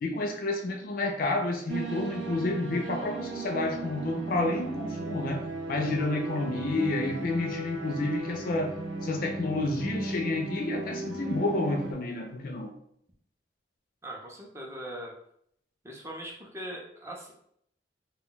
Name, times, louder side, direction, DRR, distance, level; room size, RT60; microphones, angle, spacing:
voice 1, 0.0-5.4 5.7-8.8 9.0-12.7, left 2 dB, 50° left, 3 dB, 0.4 m, -30 dB
sound 1, 1.7-11.9, right 2 dB, 85° right, 0.6 m, -36 dB
voice 2, 14.0-15.1 15.8-17.3, right 1 dB, 15° right, -1 dB, 0.5 m, -40 dB
2.2 x 2.2 x 3.8 m, 0.69 s
head